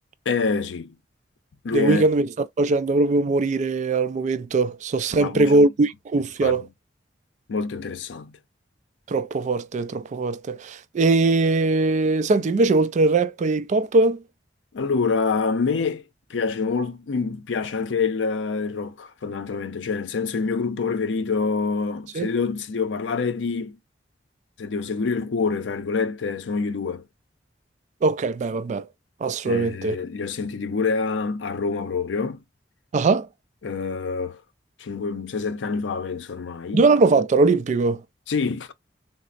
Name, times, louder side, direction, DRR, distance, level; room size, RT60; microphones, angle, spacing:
voice 1, 0.3-0.9 1.6-2.0 5.1-5.5 6.4-6.6 7.5-8.4 14.7-16.0 16.3-23.7 24.6-27.0 29.4-32.4 33.6-34.4 34.8-36.8 38.3-38.7, left 4 dB, 85° left, 0.5 m, -26 dB
voice 2, 1.7-6.7 9.1-14.2 22.1-22.3 28.0-28.9 29.2-30.0 32.9-33.3 36.7-38.0, right 3 dB, 40° right, 0.3 m, -21 dB
4.1 x 2.0 x 2.4 m
head